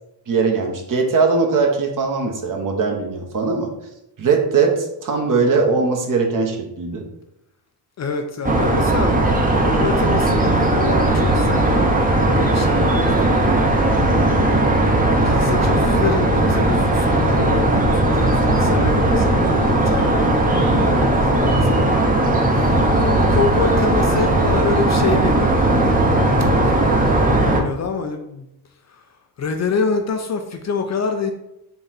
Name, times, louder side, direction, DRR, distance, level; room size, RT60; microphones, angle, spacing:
voice 1, 0.3-3.7 4.2-7.0, right 4 dB, 40° right, 2 dB, 0.9 m, -20 dB
voice 2, 8.0-9.2 9.5-11.9 12.3-13.3 15.2-22.0 22.5-26.0 26.5-26.9 27.5-28.5 28.9-29.1 29.4-31.3, left 5 dB, 35° left, 5 dB, 0.5 m, -26 dB
sound 1, 8.4-27.6, right 1 dB, 20° right, 0.7 m, -17 dB
4.0 x 2.4 x 4.0 m, 0.85 s
supercardioid pair, 70°, 48 cm